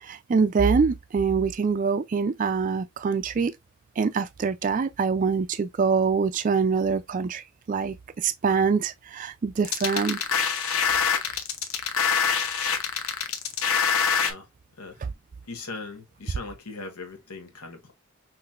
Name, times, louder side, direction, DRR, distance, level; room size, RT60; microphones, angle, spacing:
voice 1, 0.0-3.5 4.0-7.9 8.2-10.2, right 5 dB, 35° right, 0.3 m, -24 dB
sound 1, 9.6-14.3, left 7 dB, 70° left, 0.8 m, -24 dB
voice 2, 15.4-17.9, left 3 dB, 90° left, 1.3 m, -39 dB
5.8 x 3.1 x 2.4 m
head